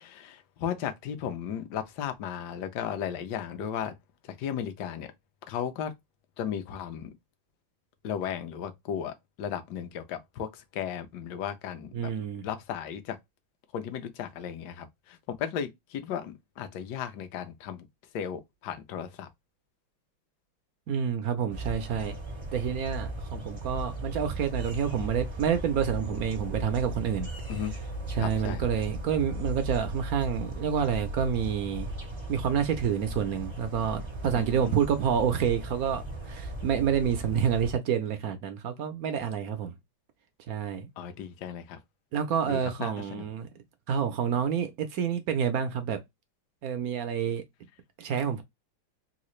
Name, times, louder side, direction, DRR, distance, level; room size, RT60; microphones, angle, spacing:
voice 1, 0.0-3.9 4.2-5.1 5.5-5.9 6.4-7.1 8.0-12.1 12.4-13.2 13.7-17.9 18.1-19.3 27.5-27.8 28.2-28.7 34.3-34.8 41.0-41.8 42.4-43.3, left 9 dB, 65° left, 1.2 m, -35 dB
voice 2, 11.9-12.4 20.9-22.2 22.5-27.3 28.2-31.9 32.3-39.7 40.5-40.9 42.1-43.5 43.9-46.0 46.6-47.4 48.0-48.4, right 8 dB, 75° right, 0.8 m, -28 dB
sound 1, 21.5-37.7, right 1 dB, 45° right, 0.3 m, -37 dB
3.8 x 2.4 x 3.1 m
omnidirectional pair, 2.2 m